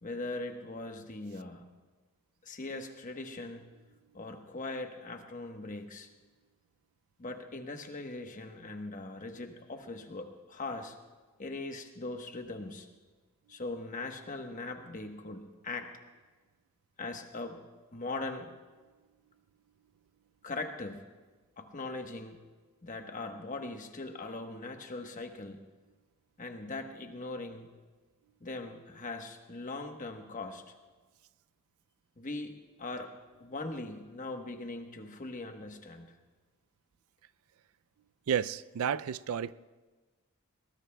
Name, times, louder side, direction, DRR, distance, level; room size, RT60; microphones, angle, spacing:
voice 1, 0.0-1.6 2.4-3.6 4.1-6.1 7.2-11.0 11.4-12.9 13.5-15.9 17.0-17.6 17.9-18.5 20.4-21.0 21.6-22.4 22.8-25.6 26.4-27.7 28.4-30.6 32.2-33.1 33.4-36.1, left 2 dB, 35° left, 5 dB, 1.1 m, -40 dB
voice 2, 38.3-39.5, right 8 dB, 75° right, 15 dB, 0.4 m, -31 dB
21.5 x 19.5 x 2.2 m, 1.3 s
head